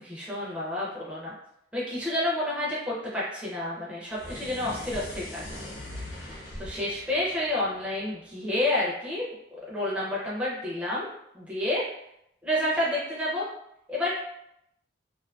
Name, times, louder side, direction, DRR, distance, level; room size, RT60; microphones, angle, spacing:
voice 1, 0.0-1.3 1.7-9.2 9.7-11.1 11.3-11.8 12.4-13.4 13.9-14.2, left 1 dB, 5° right, -7 dB, 0.5 m, -30 dB
sound 1, 4.1-8.5, left 1 dB, 70° left, 1.0 m, -41 dB
2.6 x 2.4 x 2.2 m, 0.79 s
head